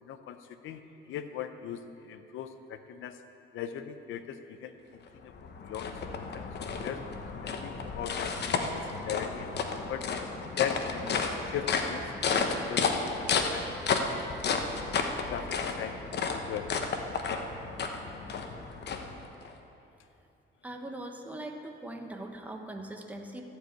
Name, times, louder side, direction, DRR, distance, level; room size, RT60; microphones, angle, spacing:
voice 1, 0.0-0.8 1.1-3.2 3.5-5.3 5.6-7.0 7.4-10.0 10.6-12.0 12.4-14.6 15.3-16.7, left 9 dB, 85° left, 9 dB, 0.7 m, -39 dB
sound 1, 5.1-19.5, left 4 dB, 60° left, 1.0 m, -32 dB
voice 2, 20.6-23.4, right 1 dB, 5° right, 2 dB, 1.2 m, -41 dB
14.5 x 4.9 x 8.2 m, 2.8 s
cardioid pair, 90°, 20 cm